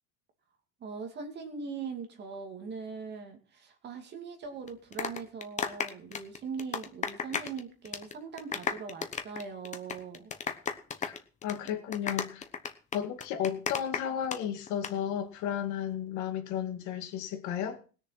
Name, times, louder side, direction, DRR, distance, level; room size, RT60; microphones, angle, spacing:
voice 1, 0.8-10.3 11.8-11.9, right 5 dB, 30° right, 2.5 m, -41 dB
sound 1, 4.7-7.6 7.8-8.1 8.4-14.4 14.7-14.9, left 6 dB, 20° left, 1.0 m, -34 dB
voice 2, 11.0-12.5 12.9-17.8, left 9 dB, 55° left, 2.2 m, -33 dB
19.5 x 6.9 x 5.8 m
cardioid pair, 175°, 33 cm